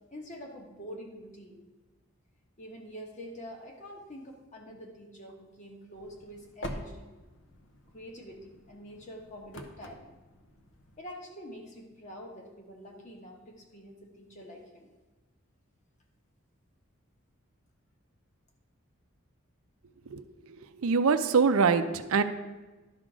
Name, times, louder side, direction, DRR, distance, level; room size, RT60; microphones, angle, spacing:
voice 1, 0.1-1.6 2.6-7.1 7.9-10.2 11.0-14.9, equal, 35° left, 0 dB, 1.2 m, -46 dB
sound 1, 5.9-11.0, left 1 dB, 60° left, 0.8 m, -46 dB
voice 2, 20.5-22.2, right 5 dB, 75° right, 10 dB, 0.5 m, -24 dB
11.0 x 3.8 x 6.1 m, 1.2 s
head